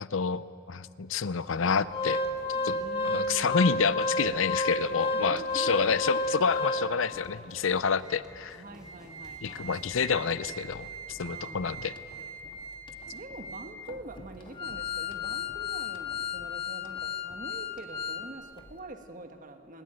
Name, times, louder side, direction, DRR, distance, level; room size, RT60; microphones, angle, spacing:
voice 1, 0.0-2.2 2.6-2.7 3.0-8.6 9.4-11.9, left 5 dB, 75° left, 15 dB, 0.6 m, -28 dB
Organ, 1.6-7.2 7.7-7.8 8.1-8.2 8.7-18.3 18.6-18.7, left 2 dB, 25° left, 1.6 m, -33 dB
sound 1, 2.2-10.2, equal, 5° right, 3.7 m, -55 dB
voice 2, 2.7-3.7 5.1-6.0 8.5-9.7 11.2-11.9 13.1-19.8, right 1 dB, 40° right, 6 dB, 1.5 m, -45 dB
20.5 x 20.5 x 9.0 m, 2.6 s
head